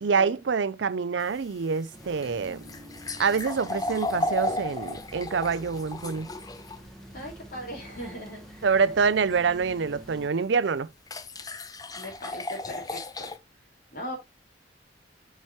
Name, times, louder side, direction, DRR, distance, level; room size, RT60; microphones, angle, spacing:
voice 1, 0.0-2.6 3.2-6.3 8.6-10.9, right 5 dB, 75° right, 0.5 m, -26 dB
sound 1, 1.2-6.8 9.9-10.0 11.1-13.4, left 2 dB, 20° left, 0.6 m, -34 dB
sound 2, 1.9-10.3, equal, 5° left, 1.5 m, -47 dB
voice 2, 7.1-8.7 11.3-11.5 11.9-13.3 13.9-14.2, equal, 50° left, 4.7 m, -39 dB
7.3 x 6.0 x 3.1 m
head